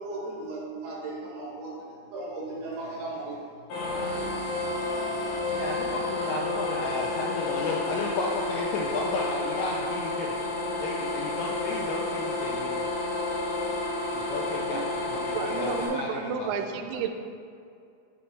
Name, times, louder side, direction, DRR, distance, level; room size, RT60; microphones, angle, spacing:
voice 1, 0.0-3.4 4.1-4.4, right 2 dB, 65° right, -5 dB, 3.0 m, -37 dB
sound 1, 3.7-15.9, left 2 dB, 70° left, 2.7 m, -30 dB
voice 2, 5.5-10.3 10.8-12.8 14.1-17.1, left 3 dB, 85° left, -2 dB, 2.5 m, -34 dB
voice 3, 15.3-17.1, right 6 dB, 85° right, 6 dB, 3.0 m, -31 dB
10.0 x 4.5 x 3.2 m, 2.4 s
omnidirectional pair, 5.7 m